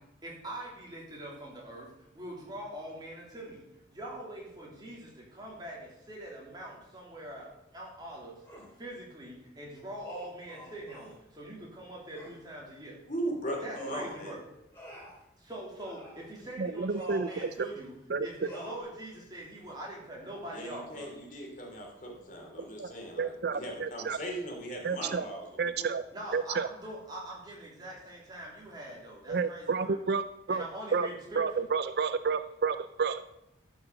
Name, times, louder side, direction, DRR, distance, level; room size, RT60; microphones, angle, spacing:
voice 1, 0.2-3.6 3.9-8.4 8.8-13.0 13.6-14.4 15.4-17.9 18.2-21.1 26.1-29.9 30.5-31.7, right 1 dB, 20° right, -3 dB, 3.1 m, -43 dB
sound 1, 8.4-8.7 10.0-11.2 12.1-12.4 13.7-14.3 14.7-15.2 15.8-16.3 16.9-17.5 18.4-18.8, right 2 dB, 15° left, 3.6 m, -46 dB
voice 2, 13.1-14.3 20.5-25.4 25.8-25.9, right 1 dB, 40° left, 0 dB, 3.0 m, -38 dB
voice 3, 16.6-17.5 18.1-18.5 22.6-24.2 24.8-25.2 25.6-26.0 26.3-26.7 29.3-30.6 30.9-31.1 31.4-33.2, right 5 dB, 55° right, 13 dB, 0.4 m, -31 dB
13.0 x 6.0 x 6.7 m, 0.85 s
head